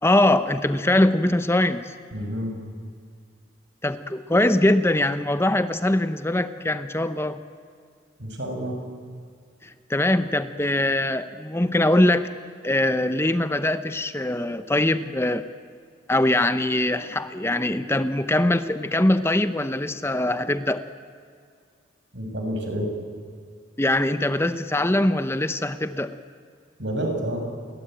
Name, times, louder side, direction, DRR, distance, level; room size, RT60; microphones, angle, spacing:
voice 1, 0.0-1.9 3.8-7.4 9.6-12.3 12.6-15.4 16.1-20.8 23.8-26.2, left 1 dB, 15° left, 11 dB, 0.7 m, -22 dB
voice 2, 2.1-2.5 8.2-8.8 22.1-22.9 26.8-27.4, equal, 70° right, 3 dB, 6.5 m, -29 dB
29.5 x 22.0 x 9.0 m, 2.2 s
head